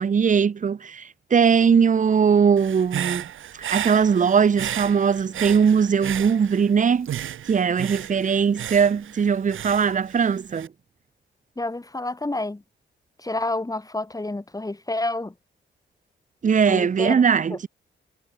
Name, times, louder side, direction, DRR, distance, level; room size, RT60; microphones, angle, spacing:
voice 1, 0.0-3.2 3.7-7.1 7.5-10.7 16.4-17.7, right 6 dB, 40° right, 0.7 m, -20 dB
Human voice / Breathing, 2.6-6.7 7.1-10.7, right 11 dB, 90° right, 2.8 m, -33 dB
voice 2, 11.6-12.6 13.2-15.3 16.7-17.2 17.5-17.6, left 2 dB, 15° left, 2.6 m, -29 dB
cardioid pair, 75°, 20 cm